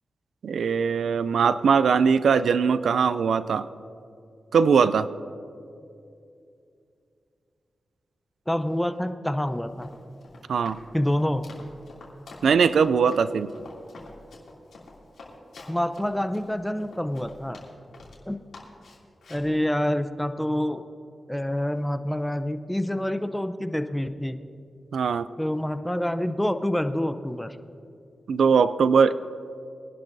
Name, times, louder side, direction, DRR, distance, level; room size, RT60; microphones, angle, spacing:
voice 1, 0.4-3.7 4.5-5.1 10.5-10.8 12.4-13.5 24.9-25.3 28.3-29.2, right 6 dB, 85° right, 15 dB, 0.3 m, -21 dB
voice 2, 8.5-9.9 10.9-11.5 15.7-17.6 18.3-18.4 19.3-20.8 21.3-24.4 25.4-27.6, left 1 dB, 5° left, 10 dB, 0.6 m, -27 dB
Run, 9.6-18.2 18.5-19.5, left 3 dB, 80° left, 2.7 m, -47 dB
22.5 x 11.5 x 2.7 m, 2.6 s
cardioid pair, 60°, 0 cm